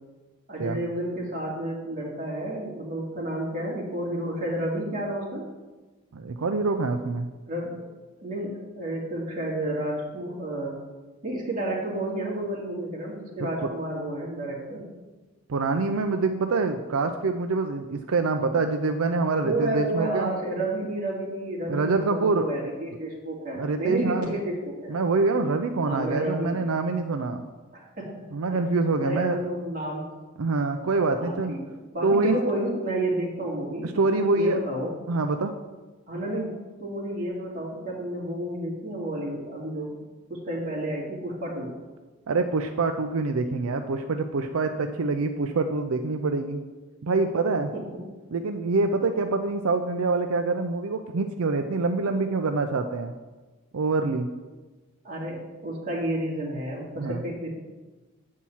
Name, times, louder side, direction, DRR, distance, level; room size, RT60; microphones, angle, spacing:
voice 1, 0.5-5.4 7.5-7.9 8.2-10.8 11.2-14.9 19.4-25.0 25.8-26.6 27.7-28.6 29.0-30.1 31.2-34.9 36.1-40.0 40.3-41.7 47.7-47.8 55.0-57.5, right 1 dB, 40° right, -4 dB, 2.4 m, -31 dB
voice 2, 6.1-7.3 13.4-13.7 15.5-20.3 21.7-22.5 23.5-24.4 24.9-27.4 28.3-29.4 30.4-31.5 32.0-32.4 33.8-34.6 35.1-35.5 42.3-46.6 47.0-47.7 48.3-53.1 53.7-54.3 56.9-57.2, right 3 dB, 85° right, 6 dB, 0.5 m, -25 dB
8.5 x 4.5 x 7.1 m, 1.2 s
head